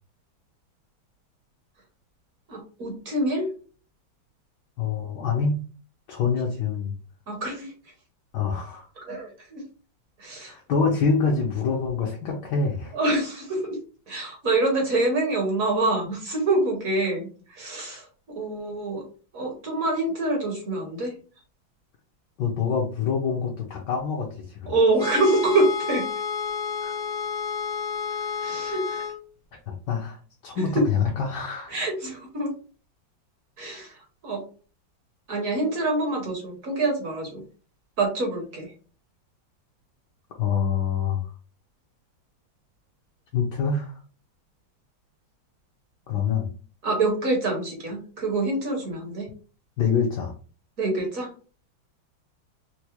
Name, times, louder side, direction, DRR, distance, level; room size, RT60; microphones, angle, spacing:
voice 1, 2.5-3.5 7.3-7.7 9.1-9.6 10.2-10.5 12.9-13.8 14.1-19.0 19.3-21.1 24.7-26.0 28.4-29.0 30.6-30.8 31.7-32.5 33.6-34.4 35.3-37.4 38.0-38.7 46.8-49.3 50.8-51.3, right 2 dB, 55° right, 1 dB, 1.1 m, -26 dB
voice 2, 4.8-5.6 6.1-6.9 8.3-8.9 10.4-12.9 22.4-24.7 26.8-27.0 28.1-28.6 29.7-30.2 30.4-31.7 40.4-41.3 43.3-44.0 46.1-46.5 49.8-50.3, left 5 dB, 70° left, 0 dB, 1.1 m, -26 dB
sound 1, 25.0-29.2, left 6 dB, 40° left, 0.8 m, -30 dB
4.5 x 2.0 x 2.9 m, 0.37 s
omnidirectional pair, 2.2 m